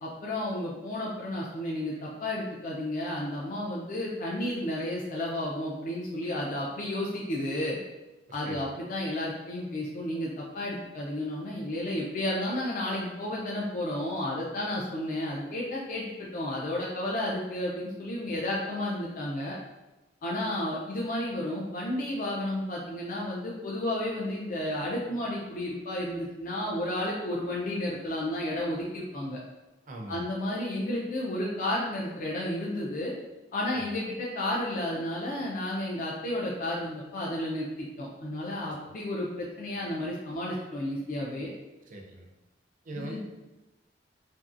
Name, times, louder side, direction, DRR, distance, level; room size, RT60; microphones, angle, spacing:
voice 1, 0.0-7.8 8.3-19.6 20.2-29.4 30.1-33.1 33.5-41.5 42.9-43.2, left 1 dB, 50° left, -4 dB, 0.4 m, -32 dB
voice 2, 8.3-8.7 29.9-30.3 33.7-34.0 38.7-38.8 41.9-42.3 42.8-43.2, right 1 dB, 45° right, 1 dB, 0.5 m, -41 dB
2.9 x 2.6 x 2.4 m, 1.1 s
head